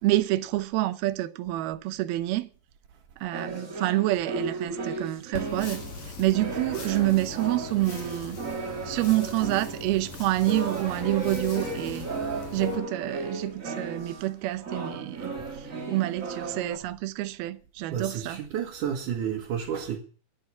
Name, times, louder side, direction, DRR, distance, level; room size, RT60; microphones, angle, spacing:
voice 1, 0.0-2.5 3.2-5.8 6.2-8.4 8.9-12.1 12.5-18.4, right 17 dB, 80° right, 2.7 m, -27 dB
sound 1, 3.3-14.4 14.6-16.8, right 3 dB, 35° right, 1.3 m, -35 dB
sound 2, 5.3-12.8, left 4 dB, 50° left, 3.9 m, -41 dB
voice 2, 17.9-20.0, right 8 dB, 60° right, 2.8 m, -31 dB
11.5 x 9.6 x 8.2 m
omnidirectional pair, 4.4 m